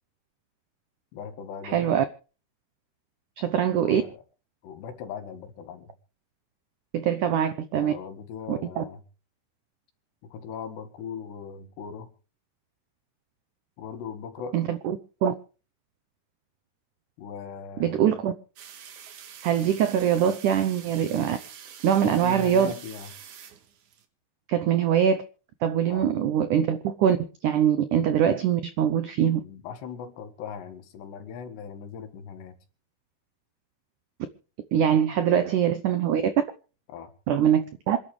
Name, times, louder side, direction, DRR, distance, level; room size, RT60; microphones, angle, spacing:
voice 1, 1.1-1.9 3.8-4.2 4.6-5.9 7.8-9.0 10.2-12.1 13.8-14.6 17.2-18.2 22.0-23.1 25.9-26.1 29.3-32.6 36.9-37.1, left 7 dB, 75° left, 3.9 m, -39 dB
voice 2, 1.6-2.0 3.4-4.0 6.9-7.9 8.5-8.8 14.5-15.3 17.8-18.3 19.4-21.4 21.8-22.7 24.5-25.2 25.6-27.2 27.4-29.4 34.7-36.3 37.3-38.0, right 9 dB, 85° right, 1.8 m, -23 dB
sound 1, 18.6-24.0, right 8 dB, 55° right, 2.6 m, -46 dB
27.0 x 11.5 x 3.3 m
omnidirectional pair, 4.9 m